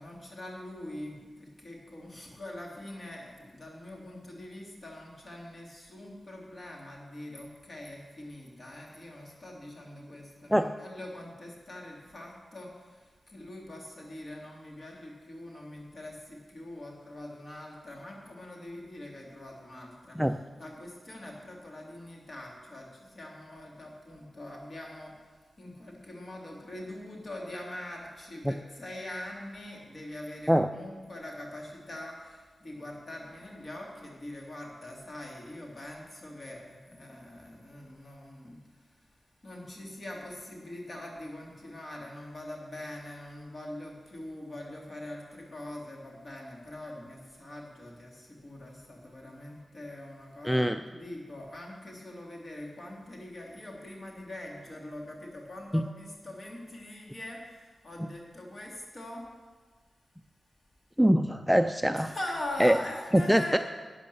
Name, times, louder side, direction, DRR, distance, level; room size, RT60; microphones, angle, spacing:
voice 1, 0.0-20.2 20.6-25.1 25.6-38.6 39.4-59.3 61.9-63.6, left 1 dB, 40° left, -1 dB, 2.8 m, -43 dB
voice 2, 50.4-50.8 55.7-55.9 58.0-58.1 61.0-62.1 62.6-62.8 63.1-63.6, equal, 5° right, 8 dB, 0.3 m, -23 dB
12.5 x 8.7 x 6.9 m, 1.4 s
wide cardioid pair, 125°, 0 cm